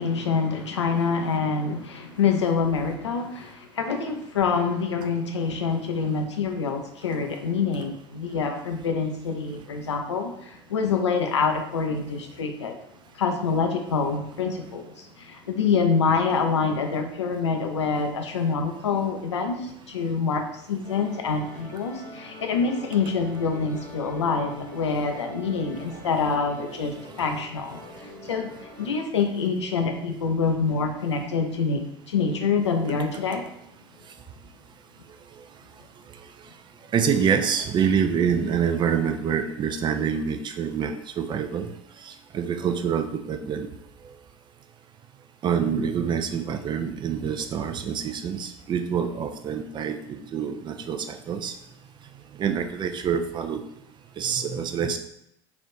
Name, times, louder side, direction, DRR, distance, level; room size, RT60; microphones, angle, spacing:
voice 1, 0.0-12.7 13.1-33.4, left 5 dB, 80° left, 4 dB, 0.6 m, -26 dB
sound 1, 20.8-29.0, left 1 dB, 85° right, 1.4 m, -44 dB
voice 2, 36.9-41.7 42.0-43.7 45.4-51.5 52.4-53.6 54.2-55.0, right 7 dB, 30° right, 6 dB, 0.5 m, -26 dB
3.4 x 2.5 x 4.3 m, 0.76 s
figure-of-eight pair, 70°, 14 cm